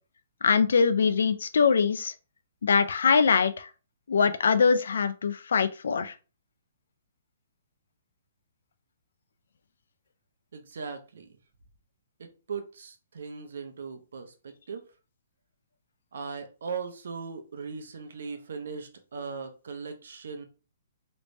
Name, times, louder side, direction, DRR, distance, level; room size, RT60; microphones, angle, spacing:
voice 1, 0.4-2.1 2.6-3.7 4.1-6.1, left 5 dB, 70° left, 0.4 m, -23 dB
voice 2, 10.5-11.4 12.2-14.9 16.1-20.4, right 5 dB, 65° right, 0.8 m, -39 dB
3.2 x 3.2 x 2.6 m
hypercardioid pair, 180°, 0 cm